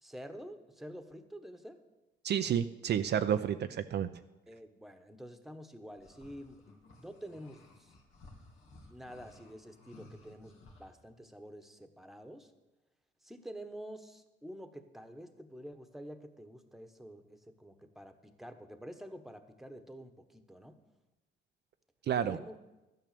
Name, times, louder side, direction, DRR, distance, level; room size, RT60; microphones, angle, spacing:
voice 1, 0.0-1.8 4.5-7.9 8.9-12.5 13.2-20.8 22.2-22.6, equal, ahead, 8 dB, 1.2 m, -48 dB
voice 2, 2.2-4.1 22.1-22.4, right 9 dB, 55° right, 9 dB, 0.5 m, -30 dB
sound 1, 5.9-10.9, left 2 dB, 85° left, 2.2 m, -57 dB
12.5 x 9.2 x 6.8 m, 1.0 s
cardioid pair, 90°, 20 cm